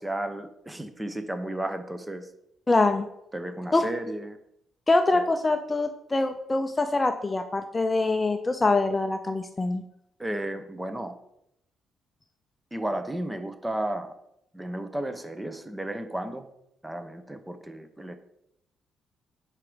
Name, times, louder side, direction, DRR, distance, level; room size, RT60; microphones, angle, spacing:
voice 1, 0.0-2.3 3.3-4.4 5.1-5.2 10.2-11.2 12.7-14.1 14.5-16.5 16.8-18.2, right 1 dB, 10° right, 9 dB, 0.8 m, -33 dB
voice 2, 2.7-3.1 3.7-3.8 4.9-9.8, left 2 dB, 20° left, 8 dB, 0.5 m, -24 dB
4.8 x 4.8 x 6.1 m, 0.79 s
cardioid pair, 90°, 0 cm